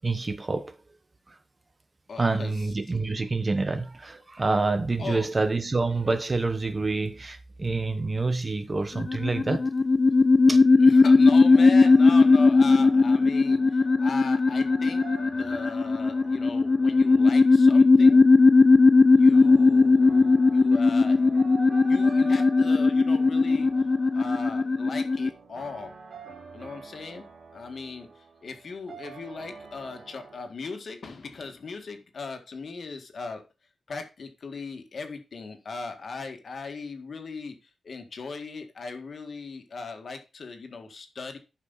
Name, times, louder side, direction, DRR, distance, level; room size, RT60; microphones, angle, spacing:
voice 1, 0.0-0.7 2.2-9.6 10.5-10.6, right 3 dB, 30° right, 1.0 m, -27 dB
voice 2, 2.1-2.7 5.0-5.3 10.8-15.0 15.3-18.2 19.1-21.4 21.9-23.9 24.1-25.9 26.5-27.2 27.5-33.4 33.9-41.4, left 4 dB, 55° left, 1.8 m, -38 dB
sound 1, 9.0-25.3, left 3 dB, 35° left, 0.4 m, -18 dB
sound 2, 11.5-30.4, right 4 dB, 65° right, 3.7 m, -46 dB
12.0 x 5.6 x 4.1 m
wide cardioid pair, 125°, 0 cm